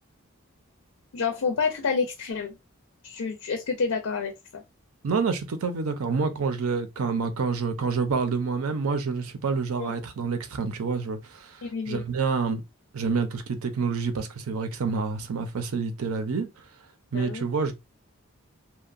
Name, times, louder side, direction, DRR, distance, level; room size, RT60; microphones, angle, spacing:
voice 1, 1.1-2.6 3.0-4.6 9.8-9.9 11.6-12.0 17.1-17.5, left 5 dB, 80° left, 0.5 m, -29 dB
voice 2, 5.0-12.6 12.9-16.6 17.1-17.7, right 5 dB, 80° right, 0.5 m, -28 dB
2.8 x 2.1 x 2.4 m
head